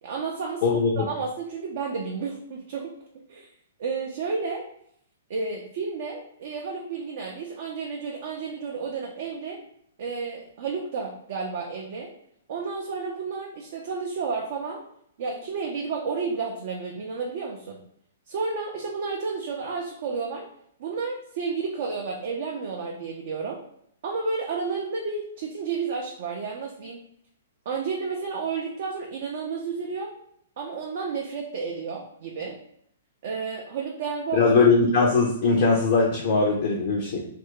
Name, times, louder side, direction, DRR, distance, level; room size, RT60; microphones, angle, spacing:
voice 1, 0.0-0.6 1.0-2.9 3.3-3.5 3.8-4.6 5.3-9.6 10.0-12.1 12.5-14.8 15.2-17.8 18.3-20.5 20.8-23.6 24.0-27.0 27.7-30.1 30.6-32.6 33.2-34.5, right 5 dB, 50° right, 0 dB, 0.4 m, -31 dB
voice 2, 0.6-1.1 34.3-37.2, left 4 dB, 50° left, -1 dB, 0.4 m, -20 dB
2.4 x 2.2 x 3.5 m, 0.70 s
figure-of-eight pair, 115°, 0 cm